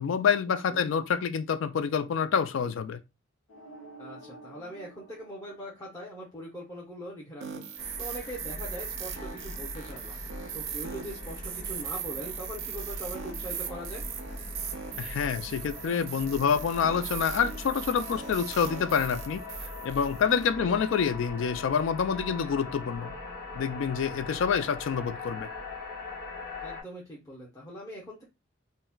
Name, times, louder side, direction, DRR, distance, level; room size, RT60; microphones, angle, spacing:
voice 1, 0.0-3.0 15.0-19.4 19.8-23.1 23.6-25.5, left 6 dB, 70° left, 0.3 m, -27 dB
sound 1, 3.5-6.5, right 3 dB, 85° left, 0.8 m, -50 dB
voice 2, 4.0-14.1 20.5-20.8 26.6-28.2, equal, 15° left, 0.7 m, -42 dB
sound 2, 7.4-20.5, right 8 dB, 70° right, 0.4 m, -39 dB
sound 3, 7.8-26.8, left 3 dB, 40° left, 1.1 m, -41 dB
3.9 x 2.1 x 2.2 m
head